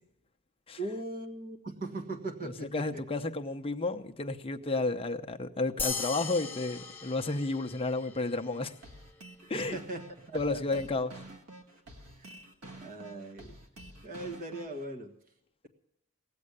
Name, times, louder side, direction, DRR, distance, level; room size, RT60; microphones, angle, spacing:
voice 1, 0.8-2.8 9.4-10.8 12.2-12.3 12.8-13.6 14.0-15.1, right 2 dB, 40° right, 1.7 m, -39 dB
voice 2, 2.4-8.7 9.5-9.8 10.3-11.1, left 3 dB, 25° left, 0.8 m, -32 dB
sound 1, 5.8-8.5, left 5 dB, 10° left, 1.3 m, -38 dB
sound 2, 8.8-14.8, right 1 dB, 70° right, 1.9 m, -49 dB
18.5 x 7.7 x 9.7 m
head